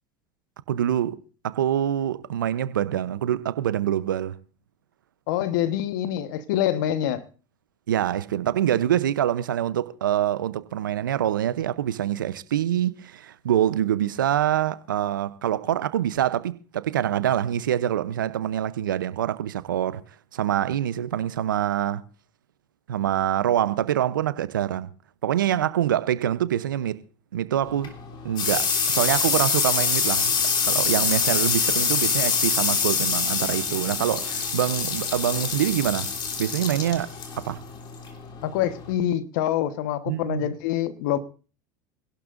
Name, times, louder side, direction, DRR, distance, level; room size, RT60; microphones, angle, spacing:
voice 1, 0.7-4.4 7.9-20.0 20.3-22.0 22.9-24.9 25.2-27.0 27.3-28.0 28.2-30.3 30.7-36.1 36.4-37.6 40.1-40.5, right 11 dB, 90° right, 0.8 m, -25 dB
voice 2, 5.3-7.2 38.4-41.2, left 11 dB, 70° left, 1.3 m, -25 dB
sound 1, 27.6-38.9, left 6 dB, 45° left, 3.4 m, -25 dB
26.0 x 12.0 x 2.6 m
hypercardioid pair, 80°, 11 cm